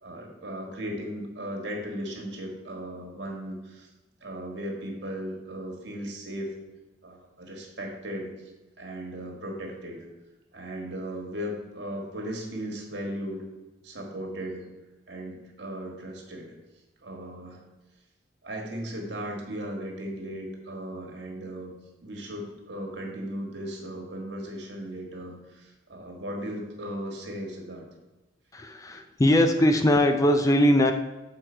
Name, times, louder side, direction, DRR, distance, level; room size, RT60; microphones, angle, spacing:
voice 1, 0.0-3.9 4.2-6.5 7.0-8.3 8.8-10.1 10.5-13.4 13.8-14.6 15.1-16.5 17.0-17.6 18.4-21.7 22.0-27.8, equal, 60° right, 0 dB, 1.7 m, -36 dB
voice 2, 28.5-30.9, left 1 dB, 15° left, 5 dB, 0.4 m, -21 dB
7.7 x 4.6 x 4.4 m, 1.1 s
head